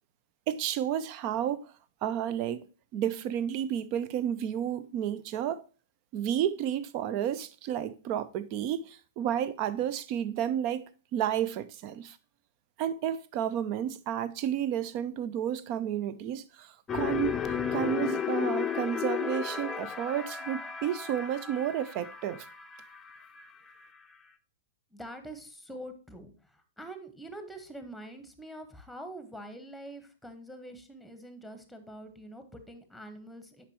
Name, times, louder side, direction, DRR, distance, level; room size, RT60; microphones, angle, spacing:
voice 1, 0.5-1.6 2.0-2.7 2.9-5.6 6.1-12.2 12.8-17.4 17.7-22.5, right 10 dB, 40° right, 0.6 m, -31 dB
sound 1, 16.9-23.9, left 8 dB, 20° left, 0.6 m, -34 dB
voice 2, 24.9-33.6, right 1 dB, ahead, 1.2 m, -45 dB
9.8 x 5.2 x 3.0 m
figure-of-eight pair, 105°, 0 cm